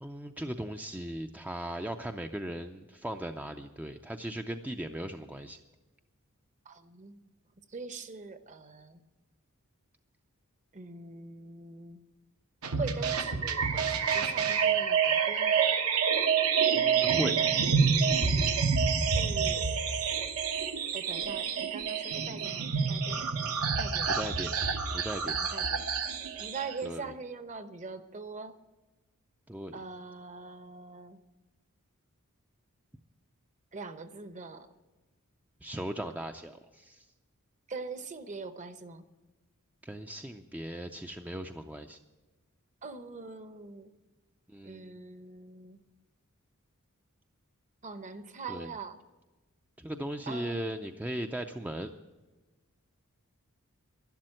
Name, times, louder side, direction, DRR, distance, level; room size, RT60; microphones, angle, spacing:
voice 1, 0.0-5.6 16.7-17.4 24.1-24.5 24.9-25.4 26.8-27.0 29.5-29.8 35.6-37.0 39.8-42.0 44.5-44.9 48.5-48.7 49.8-51.9, right 1 dB, 5° right, 6 dB, 0.4 m, -38 dB
voice 2, 6.6-7.2 7.7-9.0 10.7-12.0 12.7-15.6 19.1-19.7 20.9-24.1 25.2-25.8 26.4-28.6 29.7-31.2 33.7-34.7 37.7-39.1 42.8-43.9 44.6-45.8 47.8-49.0 50.3-50.8, right 4 dB, 35° right, 10 dB, 0.8 m, -43 dB
sound 1, 12.6-26.7, right 6 dB, 75° right, 1.1 m, -28 dB
12.0 x 11.5 x 7.7 m, 1.2 s
head